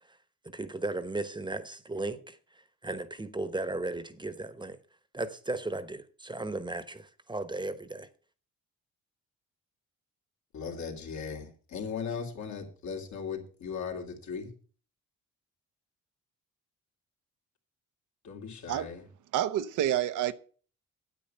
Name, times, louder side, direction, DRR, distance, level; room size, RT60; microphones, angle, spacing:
voice 1, 0.4-4.8 5.1-8.1, right 2 dB, 15° right, 1.0 m, -36 dB
voice 2, 10.5-14.5 18.2-19.1, left 6 dB, 70° left, 2.8 m, -38 dB
voice 3, 19.3-20.3, right 11 dB, 80° right, 0.9 m, -28 dB
9.0 x 8.8 x 5.6 m
cardioid pair, 90°, 30 cm